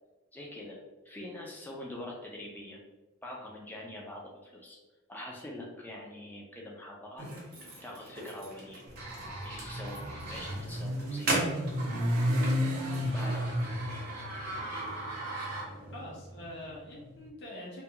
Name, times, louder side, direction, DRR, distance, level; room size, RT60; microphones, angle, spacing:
voice 1, 0.3-0.8 1.0-2.8 3.2-4.8 5.1-7.2 7.8-8.8 9.4-11.5 13.1-13.5, left 1 dB, 10° left, -2 dB, 0.4 m, -44 dB
sound 1, 7.2-16.0, right 2 dB, 45° right, 0.7 m, -38 dB
Motorcycle, 8.9-17.1, equal, 80° right, 0.4 m, -33 dB
voice 2, 15.9-17.8, left 1 dB, 50° left, -5 dB, 0.7 m, -44 dB
2.3 x 2.3 x 2.7 m, 1.1 s
head